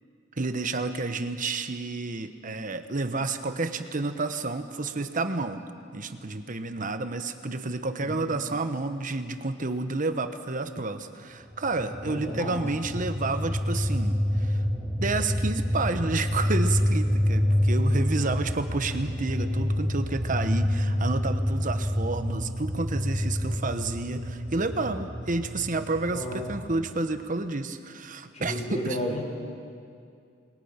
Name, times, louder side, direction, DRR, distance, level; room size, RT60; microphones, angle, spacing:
voice 1, 0.4-5.6 5.9-14.6 15.0-29.0, right 3 dB, 45° right, 9 dB, 1.1 m, -30 dB
sound 1, 11.5-26.9, equal, 5° right, 2.1 m, -28 dB
voice 2, 12.0-12.6 26.1-26.4 28.3-29.2, left 1 dB, 35° left, 0 dB, 5.0 m, -32 dB
28.0 x 21.5 x 5.8 m, 2.4 s
head